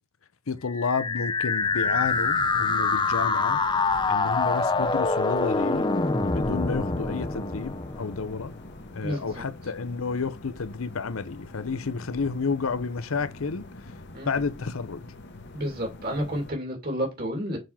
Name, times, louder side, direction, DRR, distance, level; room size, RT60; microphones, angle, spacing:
voice 1, 0.5-3.6 4.1-5.9 6.3-8.5 8.9-13.7 14.2-15.0, left 4 dB, 80° left, 0.7 m, -31 dB
sound 1, 0.7-8.6, left 4 dB, 20° left, 0.6 m, -25 dB
sound 2, 1.6-16.5, left 2 dB, 55° left, 1.0 m, -45 dB
voice 2, 15.5-17.6, equal, 45° right, 2.6 m, -30 dB
6.7 x 3.9 x 5.6 m
head